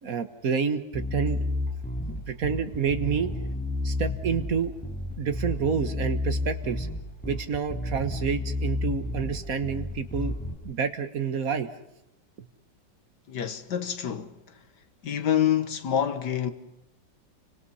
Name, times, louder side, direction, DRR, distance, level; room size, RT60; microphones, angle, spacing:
voice 1, 0.0-1.4 2.3-3.3 3.8-4.7 5.2-6.9 7.2-10.3 10.6-11.7 12.4-12.5, right 6 dB, 50° right, 1.7 m, -28 dB
Bass guitar, 0.9-10.5, left 2 dB, 5° left, 5.1 m, -31 dB
voice 2, 13.3-14.3 15.0-16.5, left 9 dB, 65° left, 1.8 m, -26 dB
29.5 x 25.0 x 5.6 m
omnidirectional pair, 2.0 m